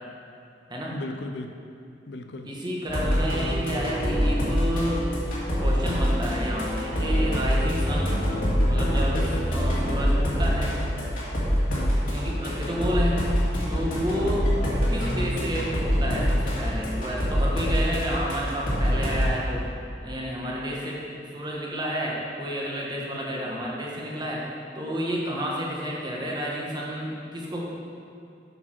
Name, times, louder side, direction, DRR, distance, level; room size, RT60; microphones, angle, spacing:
voice 1, 0.9-1.5 2.1-2.6 11.7-12.1 14.1-14.4 20.5-20.8, left 2 dB, 75° left, 6 dB, 0.5 m, -37 dB
voice 2, 2.4-5.0 5.3-8.2 8.6-10.7 12.0-13.3 13.7-14.5 14.9-19.7 20.0-21.0 21.3-24.5 24.7-27.6, equal, 25° right, -4 dB, 1.3 m, -30 dB
sound 1, 2.9-19.3, equal, 50° left, 2.1 m, -25 dB
8.0 x 4.8 x 5.9 m, 2.5 s
head